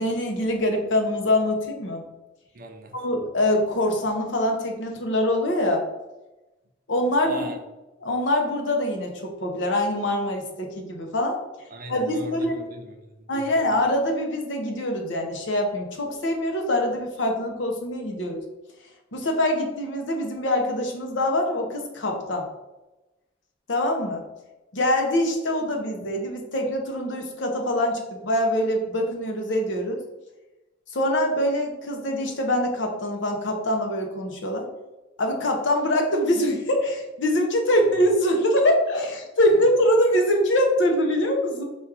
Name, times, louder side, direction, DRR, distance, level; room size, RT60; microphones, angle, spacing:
voice 1, 0.0-2.0 2.9-5.8 6.9-7.5 8.0-11.4 11.9-12.5 13.3-18.4 19.1-22.5 23.7-24.2 24.7-30.0 30.9-34.7 35.2-41.6, left 1 dB, 70° left, 2 dB, 0.8 m, -24 dB
voice 2, 2.5-3.0 7.2-7.6 11.7-13.5, right 2 dB, 45° right, 4 dB, 0.6 m, -40 dB
4.2 x 2.4 x 4.7 m, 1.0 s
head